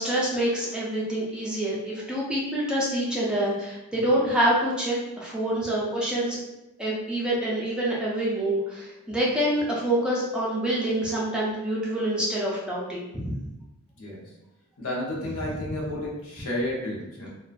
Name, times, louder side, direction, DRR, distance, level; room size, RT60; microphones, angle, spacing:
voice 1, 0.0-6.4 6.8-13.4, right 1 dB, 5° right, -6 dB, 0.4 m, -26 dB
voice 2, 14.8-17.3, left 1 dB, 75° left, -3 dB, 0.7 m, -31 dB
2.4 x 2.1 x 2.4 m, 0.95 s
head